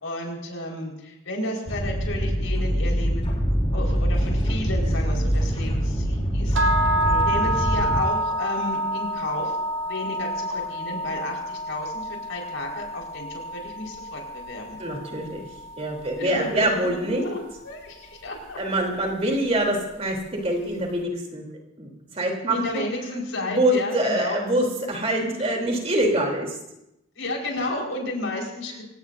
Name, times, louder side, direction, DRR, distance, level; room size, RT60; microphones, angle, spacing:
voice 1, 0.0-3.3 3.7-9.6 9.8-14.8 16.2-16.9 17.2-18.6 22.5-24.4 25.2-25.3 27.2-28.8, left 1 dB, 80° left, 0 dB, 4.7 m, -32 dB
sound 1, 1.7-8.0, equal, 30° left, 4.3 m, -24 dB
sound 2, 6.5-16.6, right 1 dB, 80° right, 1.8 m, -28 dB
voice 2, 14.8-15.4 15.8-17.2 18.6-21.4 21.8-22.8 23.4-26.6, right 1 dB, 30° right, 0 dB, 3.3 m, -25 dB
26.5 x 18.0 x 2.7 m, 0.86 s
head